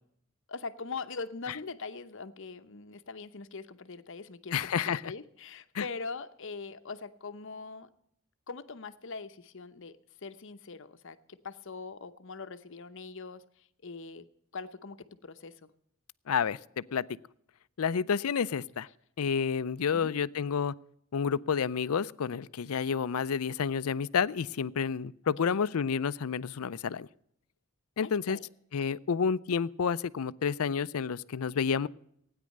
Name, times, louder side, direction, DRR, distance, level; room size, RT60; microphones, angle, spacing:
voice 1, 0.5-7.9 8.5-14.3 14.5-15.7 19.9-20.2 25.5-25.6 28.0-28.4, left 4 dB, 60° left, 11 dB, 0.8 m, -42 dB
voice 2, 4.5-5.1 5.7-5.8 16.3-17.0 17.8-18.9 19.2-20.7 21.1-27.1 28.0-28.4 28.7-31.9, left 6 dB, 85° left, 18 dB, 0.5 m, -30 dB
16.5 x 9.8 x 6.5 m, 0.72 s
head